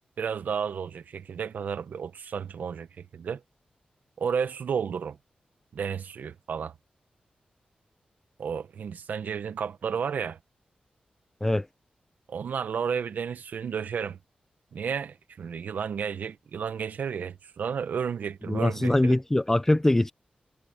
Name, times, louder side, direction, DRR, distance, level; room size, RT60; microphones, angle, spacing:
voice 1, 0.2-3.4 4.2-5.2 5.7-6.7 8.4-10.4 12.3-14.2 14.7-19.2, right 7 dB, 75° right, 0.9 m, -32 dB
voice 2, 18.5-20.1, left 1 dB, 10° left, 0.4 m, -22 dB
wide cardioid pair, 140°, 3 cm